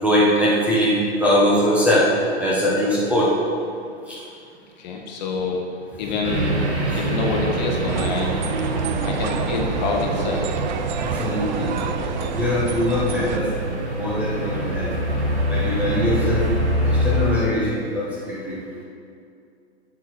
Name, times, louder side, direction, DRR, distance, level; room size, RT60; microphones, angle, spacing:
voice 1, 0.0-2.0 2.4-3.3 11.0-11.7 12.3-13.5 13.9-14.9 15.5-16.4 16.9-18.6, left 1 dB, 5° right, -7 dB, 1.1 m, -21 dB
voice 2, 4.8-5.7 6.0-6.5 6.9-8.4 9.0-10.5, left 4 dB, 40° left, 1 dB, 1.3 m, -26 dB
sound 1, 6.2-17.4, equal, 75° right, 2.0 m, -25 dB
sound 2, 7.9-13.4, right 7 dB, 45° right, 0.6 m, -28 dB
8.2 x 7.2 x 4.6 m, 2.4 s
hypercardioid pair, 145°, 34 cm